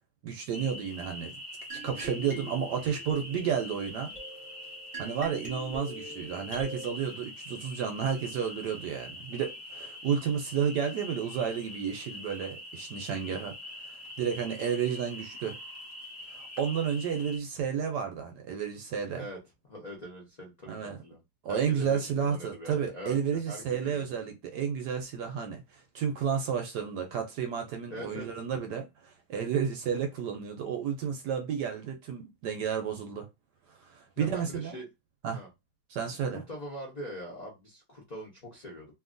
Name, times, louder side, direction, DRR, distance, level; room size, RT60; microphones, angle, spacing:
voice 1, 0.2-1.3 1.8-4.1 5.0-13.5 13.8-15.5 16.3-19.2 20.7-21.0 21.4-33.3 33.8-34.8 35.2-35.4 35.9-36.4, right 7 dB, 70° right, 1.0 m, -32 dB
sound 1, 0.5-17.4, left 1 dB, 40° left, 1.1 m, -44 dB
sound 2, 1.7-6.9, right 2 dB, 25° right, 0.8 m, -44 dB
voice 2, 19.7-21.2 21.5-23.2 23.5-24.2 27.9-28.3 34.2-34.9 35.3-35.5 36.3-38.9, equal, 65° left, 0.4 m, -42 dB
2.8 x 2.6 x 2.5 m
omnidirectional pair, 2.2 m